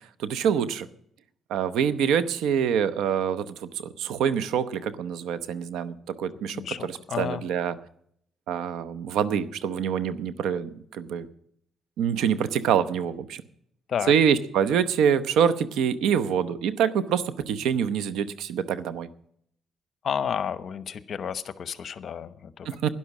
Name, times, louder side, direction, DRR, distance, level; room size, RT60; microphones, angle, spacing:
voice 1, 0.2-0.9 1.5-6.6 7.2-7.8 8.5-11.3 12.0-13.4 14.1-19.1 22.7-22.9, right 8 dB, 85° right, 14 dB, 0.8 m, -25 dB
voice 2, 6.5-7.4 13.9-14.1 20.0-22.7, left 8 dB, 55° left, 15 dB, 0.9 m, -31 dB
12.0 x 11.0 x 6.1 m, 0.66 s
cardioid pair, 90°, 0 cm